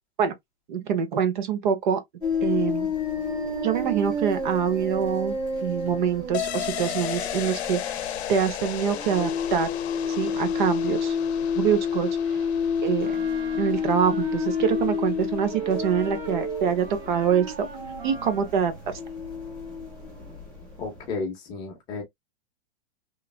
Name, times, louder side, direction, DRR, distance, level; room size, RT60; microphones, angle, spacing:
voice 1, 0.7-2.0 2.4-2.9 3.6-5.3 5.6-9.7 10.2-11.2 11.6-12.4 12.8-13.2 13.6-17.7 18.0-18.9, right 8 dB, 45° right, 0.8 m, -25 dB
sound 1, 2.2-21.1, left 5 dB, 15° right, 0.9 m, -30 dB
sound 2, 6.3-15.7 16.1-16.2, left 11 dB, 75° left, 0.6 m, -35 dB
Wind instrument woodwind instrument, 13.0-15.2 15.5-18.6, right 7 dB, 65° right, 1.1 m, -37 dB
voice 2, 20.8-22.0, left 3 dB, 15° left, 0.6 m, -33 dB
3.2 x 2.3 x 2.3 m
supercardioid pair, 170°, 33 cm